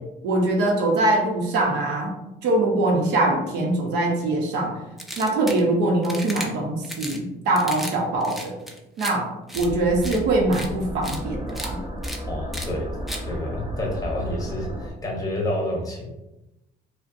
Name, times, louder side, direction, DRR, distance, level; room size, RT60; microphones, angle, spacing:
voice 1, 0.2-2.1 2.4-4.8 5.2-8.6 9.0-11.8, right 2 dB, 90° right, 1 dB, 0.8 m, -23 dB
sound 1, 5.0-5.6 6.0-6.5 6.8-7.2 7.6-7.9 8.2-9.1 9.5-9.7 10.0-10.2 10.5-10.7 11.0-11.2 11.5-11.7 12.0-12.2 12.5-12.7 13.1-13.2, equal, ahead, 0.4 m, -34 dB
sound 2, 9.5-14.9, right 1 dB, 25° right, 0.9 m, -34 dB
voice 2, 12.3-13.0 13.2-16.1, left 1 dB, 20° left, 0 dB, 0.8 m, -29 dB
5.0 x 2.2 x 2.6 m, 0.94 s
cardioid pair, 130°, 17 cm